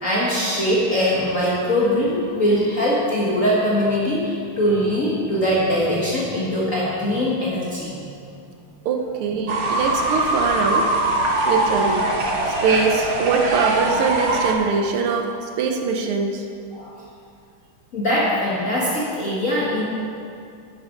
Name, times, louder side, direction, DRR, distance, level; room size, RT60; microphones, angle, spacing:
voice 1, 0.0-8.1 11.3-11.5 16.7-17.0 17.9-19.8, equal, 40° left, -6 dB, 1.8 m, -22 dB
voice 2, 8.9-10.9 11.5-12.0 12.6-16.4, right 5 dB, 85° right, 3 dB, 1.8 m, -22 dB
Fowl / Bird, 9.5-14.5, right 2 dB, 40° right, 1.2 m, -22 dB
11.0 x 8.6 x 5.2 m, 2.5 s
omnidirectional pair, 2.3 m